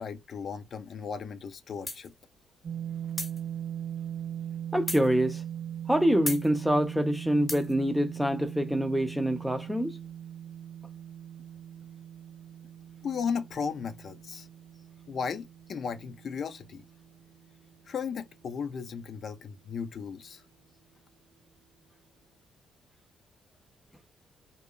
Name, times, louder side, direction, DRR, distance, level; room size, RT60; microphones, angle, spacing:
voice 1, 0.0-2.1 13.0-14.5 15.1-16.8 17.9-20.4, left 6 dB, 55° left, 0.4 m, -35 dB
sound 1, 1.9-2.1 3.2-3.4 4.9-5.1 6.3-6.5 7.5-7.7, left 2 dB, 15° left, 1.0 m, -34 dB
sound 2, 2.6-18.6, right 9 dB, 55° right, 0.4 m, -40 dB
voice 2, 4.7-5.4 5.9-10.0, equal, 5° right, 0.5 m, -26 dB
2.9 x 2.0 x 2.3 m
cardioid pair, 90°, 0 cm